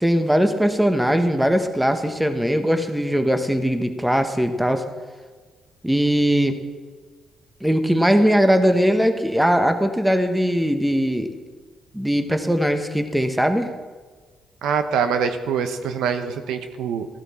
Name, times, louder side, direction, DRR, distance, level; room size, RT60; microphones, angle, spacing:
voice 1, 0.0-4.8 5.8-6.6 7.6-11.3 11.9-13.7, equal, 5° right, 8 dB, 1.0 m, -20 dB
voice 2, 14.6-17.1, right 6 dB, 85° right, 8 dB, 0.9 m, -24 dB
14.5 x 11.0 x 4.3 m, 1.4 s
cardioid pair, 90°, 0 cm